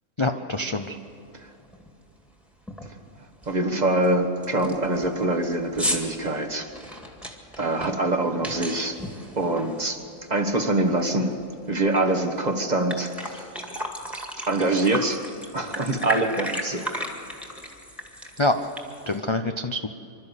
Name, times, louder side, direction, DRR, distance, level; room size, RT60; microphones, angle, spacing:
voice 1, 0.2-1.0 18.4-18.6 19.1-19.9, left 2 dB, 35° left, 6 dB, 0.4 m, -25 dB
sound 1, 1.1-1.2 1.6-1.9 2.2-2.3 2.7-3.0 3.4-3.5 4.0-4.1 4.4-10.4 10.7-12.0 12.4-12.5 12.7-19.2, equal, ahead, 1.9 m, -35 dB
voice 2, 3.4-6.7 7.6-9.0 9.4-10.0 10.3-11.3 11.7-13.5 14.5-15.2 15.5-16.9, right 2 dB, 30° right, 4 dB, 1.4 m, -24 dB
26.0 x 13.0 x 8.2 m, 2.6 s
omnidirectional pair, 1.6 m